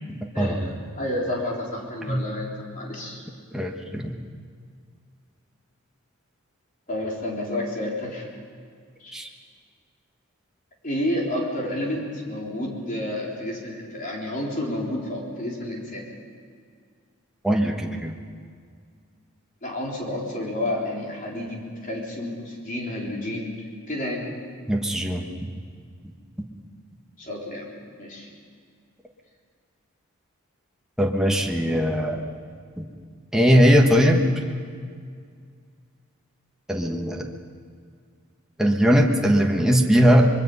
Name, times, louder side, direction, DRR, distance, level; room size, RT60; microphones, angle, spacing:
voice 1, 0.3-3.2 6.9-8.3 9.0-9.2 10.8-16.1 19.6-23.5 23.9-24.3 27.2-27.7 28.0-28.3, left 1 dB, 35° left, -2 dB, 4.0 m, -30 dB
voice 2, 3.5-4.1 9.1-9.3 17.4-18.1 24.7-25.2 31.0-32.2 32.8-32.9 33.3-34.2 36.7-37.2 38.6-40.3, equal, ahead, 0 dB, 1.4 m, -19 dB
25.5 x 22.5 x 5.6 m, 2.1 s
head